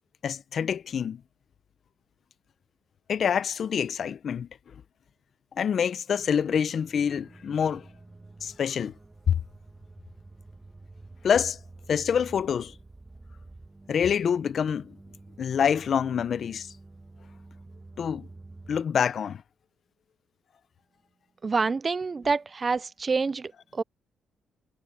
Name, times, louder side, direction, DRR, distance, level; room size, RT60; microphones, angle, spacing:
voice 1, 0.2-1.2 3.1-4.5 5.6-7.8 8.4-8.9 11.2-11.6 11.9-12.7 13.9-14.9 15.4-16.7 18.0-18.3 18.7-19.4, left 7 dB, 55° left, 0.8 m, -26 dB
sound 1, 6.2-18.8, right 2 dB, 15° right, 1.6 m, -49 dB
voice 2, 21.4-23.8, right 4 dB, 30° right, 0.4 m, -27 dB
cardioid pair, 90°, 0 cm